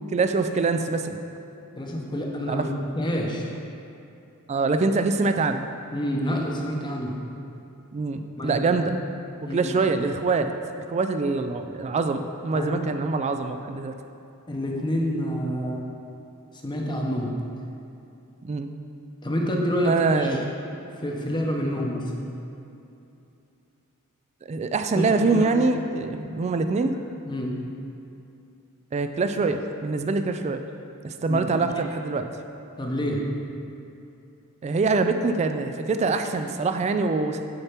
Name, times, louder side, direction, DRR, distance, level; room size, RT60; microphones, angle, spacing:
voice 1, 0.1-1.2 2.5-2.7 4.5-5.6 7.9-9.0 9.5-10.5 10.9-13.9 18.4-18.7 19.8-20.4 21.7-21.8 24.5-27.0 28.9-30.6 31.0-32.3 34.6-37.4, right 3 dB, 30° right, 8 dB, 0.3 m, -24 dB
voice 2, 1.8-2.7 3.0-3.5 5.9-7.1 8.4-8.8 9.4-9.7 12.5-12.9 14.5-15.8 16.6-17.3 19.2-20.5 21.0-22.1 24.9-25.5 27.2-27.5 31.3-31.5 32.8-33.2, equal, 20° left, -1 dB, 0.8 m, -28 dB
6.5 x 4.4 x 5.9 m, 2.7 s
head